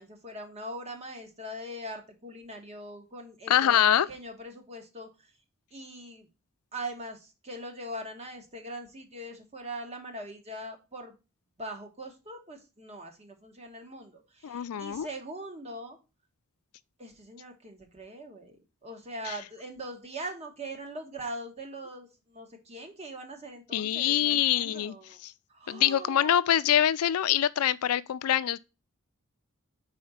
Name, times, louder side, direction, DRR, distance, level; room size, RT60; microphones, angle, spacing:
voice 1, 0.0-3.8 4.1-5.3 5.7-6.3 6.7-11.1 11.6-16.0 17.0-18.6 18.8-25.2 25.5-26.5, right 1 dB, 30° right, 1.2 m, -41 dB
voice 2, 3.5-4.1 14.4-15.1 19.3-19.4 23.7-24.9 25.2-25.3 25.7-28.6, left 10 dB, 85° left, 0.4 m, -24 dB
4.9 x 4.3 x 5.5 m
head